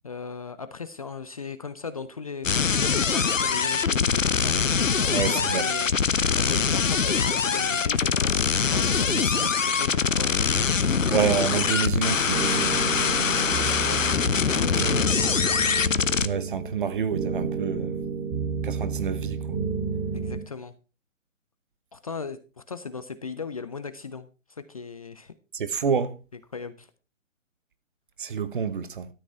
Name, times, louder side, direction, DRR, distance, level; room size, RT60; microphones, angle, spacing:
voice 1, 0.0-10.4 13.7-15.8 20.1-20.7 21.9-25.3 26.5-26.9, left 5 dB, 30° left, 0.5 m, -38 dB
sound 1, 2.4-16.3, left 6 dB, 75° left, 0.9 m, -23 dB
voice 2, 5.1-5.6 9.1-9.2 11.1-12.7 16.2-18.0 18.6-19.6 25.5-26.1 28.2-29.1, right 7 dB, 40° right, 1.1 m, -28 dB
sound 2, 12.3-20.4, right 5 dB, 15° right, 2.8 m, -31 dB
13.0 x 8.4 x 4.5 m
figure-of-eight pair, 140°, 39 cm